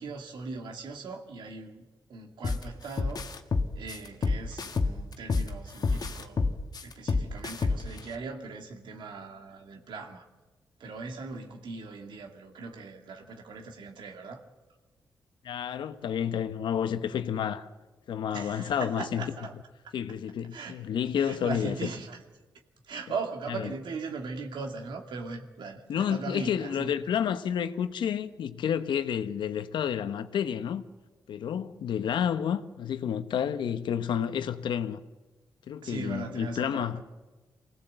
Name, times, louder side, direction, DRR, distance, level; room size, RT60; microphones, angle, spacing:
voice 1, 0.0-3.3 3.7-10.3 10.8-14.4 18.3-19.5 19.8-19.9 20.5-20.8 21.2-22.2 22.8-26.9 35.8-37.0, right 4 dB, 80° right, 2.4 m, -39 dB
sound 1, 2.4-2.6 3.0-5.5 5.8-8.0, left 4 dB, 55° left, 1.6 m, -27 dB
voice 2, 15.4-17.7 18.1-19.3 19.9-21.7 23.5-23.7 25.9-30.8 31.3-35.0 35.7-37.0, left 8 dB, 80° left, 1.0 m, -30 dB
23.5 x 17.5 x 7.9 m
cardioid pair, 60°, 8 cm